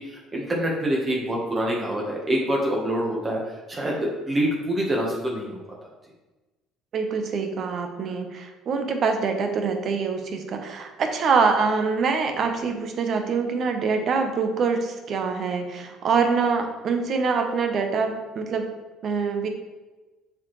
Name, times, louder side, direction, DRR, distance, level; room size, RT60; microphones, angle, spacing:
voice 1, 0.0-5.6, right 1 dB, 25° right, -2 dB, 1.3 m, -26 dB
voice 2, 6.9-18.7 19.0-19.5, right 5 dB, 50° right, 5 dB, 1.0 m, -25 dB
7.1 x 4.4 x 3.2 m, 1.2 s
supercardioid pair, 95°, 0 cm